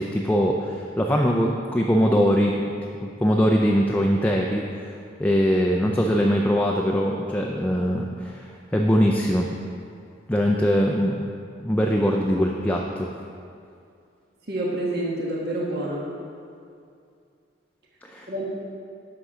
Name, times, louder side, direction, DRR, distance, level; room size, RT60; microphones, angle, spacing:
voice 1, 0.0-2.6 3.0-9.6 10.3-11.3 11.6-13.1 18.0-18.4, equal, 10° left, 0 dB, 0.5 m, -22 dB
voice 2, 14.5-16.1 18.3-18.5, right 1 dB, 50° right, -3 dB, 1.6 m, -27 dB
11.5 x 6.8 x 4.9 m, 2.4 s
head